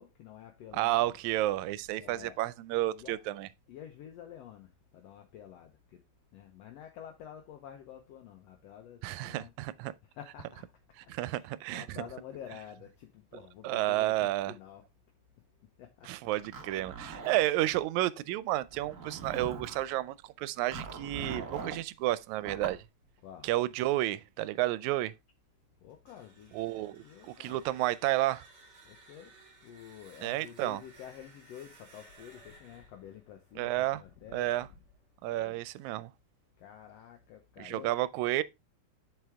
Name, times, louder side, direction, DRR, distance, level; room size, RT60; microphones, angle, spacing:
voice 1, 0.0-1.1 2.0-2.4 2.9-3.2 3.7-6.0 6.3-9.5 10.1-10.6 11.0-14.8 15.8-16.1 17.1-17.3 23.2-23.5 25.8-27.6 28.9-29.3 29.6-34.5 35.3-35.6 36.6-37.9, left 10 dB, 70° left, 1.8 m, -49 dB
voice 2, 0.7-3.5 9.0-9.9 11.1-12.0 13.6-14.5 16.0-22.8 23.4-25.1 26.5-28.4 30.2-30.8 33.6-34.0 34.3-34.7 35.2-36.1 37.6-38.4, right 16 dB, 85° right, 1.9 m, -31 dB
Zipper (clothing), 16.3-17.8 18.7-19.9 20.7-21.8 22.4-22.8, right 4 dB, 55° right, 0.8 m, -42 dB
sound 1, 25.9-34.7, right 2 dB, 40° right, 2.4 m, -58 dB
7.7 x 4.8 x 3.4 m
omnidirectional pair, 3.3 m